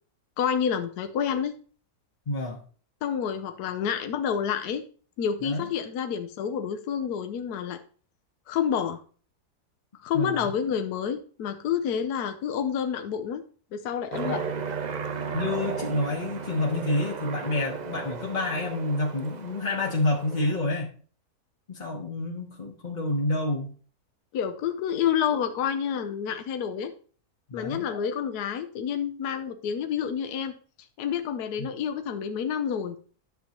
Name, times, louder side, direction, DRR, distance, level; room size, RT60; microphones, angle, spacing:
voice 1, 0.4-1.5 3.0-4.8 5.2-7.8 8.5-9.0 10.0-13.4 13.7-14.4 24.3-26.9 27.5-30.5 31.0-33.0, left 8 dB, 75° left, 7 dB, 1.2 m, -28 dB
voice 2, 2.3-2.6 5.4-5.7 10.1-10.5 14.2-14.4 15.3-20.9 21.7-23.7 27.5-27.9 31.6-31.7, left 2 dB, 35° left, -2 dB, 1.0 m, -28 dB
Aircraft, 14.1-20.6, right 5 dB, 80° right, 0.4 m, -35 dB
10.5 x 6.9 x 2.9 m, 0.42 s
omnidirectional pair, 1.7 m